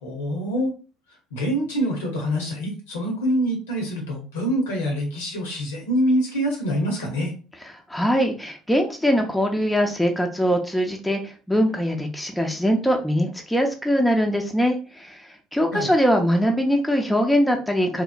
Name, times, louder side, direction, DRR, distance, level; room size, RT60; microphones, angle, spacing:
voice 1, 0.0-0.7 1.3-7.3 15.7-15.9, equal, 80° left, 1 dB, 0.9 m, -25 dB
voice 2, 7.6-18.0, equal, 5° left, 3 dB, 0.5 m, -22 dB
2.9 x 2.0 x 2.4 m, 0.35 s
hypercardioid pair, 60°, 0 cm